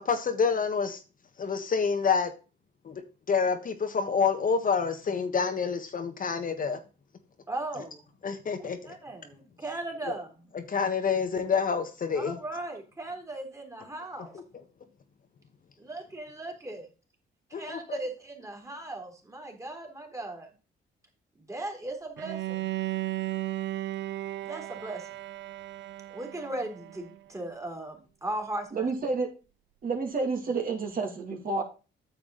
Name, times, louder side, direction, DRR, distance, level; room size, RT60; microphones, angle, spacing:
voice 1, 0.0-1.0 1.4-2.3 2.8-3.0 3.3-6.8 8.2-8.8 10.1-10.2 10.5-12.4 17.5-18.0, left 5 dB, 45° left, 1.3 m, -27 dB
voice 2, 7.5-8.0 8.6-10.3 12.1-14.4 15.8-16.9 17.5-20.5 21.4-22.7 24.4-25.1 26.1-28.9, right 2 dB, 15° right, 3.1 m, -37 dB
Bowed string instrument, 22.2-27.2, right 16 dB, 65° right, 0.5 m, -35 dB
voice 3, 28.7-29.3 29.8-31.6, right 4 dB, 45° right, 2.5 m, -29 dB
9.2 x 7.1 x 3.9 m
cardioid pair, 90°, 20 cm